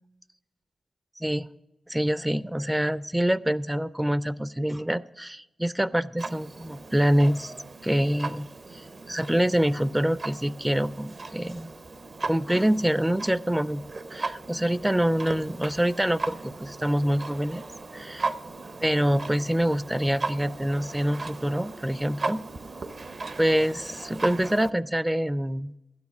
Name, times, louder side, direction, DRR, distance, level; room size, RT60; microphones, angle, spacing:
voice 1, 1.2-1.5 1.9-7.5 7.8-8.5 8.7-11.7 12.3-13.8 14.1-17.6 17.9-18.3 18.8-22.4 23.4-25.7, equal, 10° right, 17 dB, 0.4 m, -26 dB
Clock, 6.2-24.7, right 3 dB, 55° right, 0.7 m, -37 dB
12.0 x 9.7 x 5.9 m, 1.0 s
cardioid pair, 60°, 0 cm